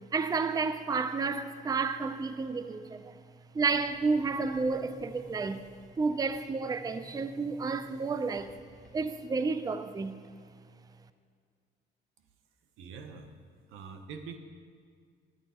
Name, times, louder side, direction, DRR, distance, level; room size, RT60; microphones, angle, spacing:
voice 1, 0.1-3.2 3.5-5.6 6.0-8.5 8.9-10.2, right 4 dB, 20° right, 0.4 m, -31 dB
Boom, 3.6-9.4, left 1 dB, 5° left, 1.6 m, -55 dB
voice 2, 12.8-13.3 13.7-14.4, right 5 dB, 90° right, 0.8 m, -44 dB
10.0 x 9.0 x 4.2 m
cardioid pair, 90°, 20 cm